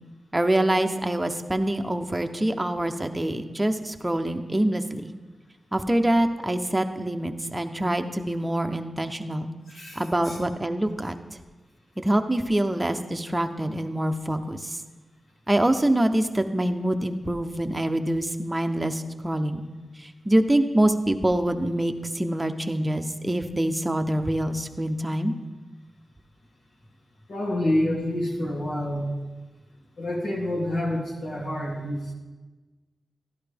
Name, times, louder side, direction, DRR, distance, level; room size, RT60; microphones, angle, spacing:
voice 1, 0.3-5.1 5.7-9.5 10.0-11.2 12.0-14.8 15.5-19.6 20.0-25.3, right 1 dB, 15° right, 6 dB, 0.7 m, -25 dB
voice 2, 9.7-10.4 27.3-29.1 30.0-32.1, left 1 dB, 85° left, -4 dB, 2.7 m, -28 dB
12.5 x 11.0 x 3.5 m, 1.2 s
wide cardioid pair, 85°, 0 cm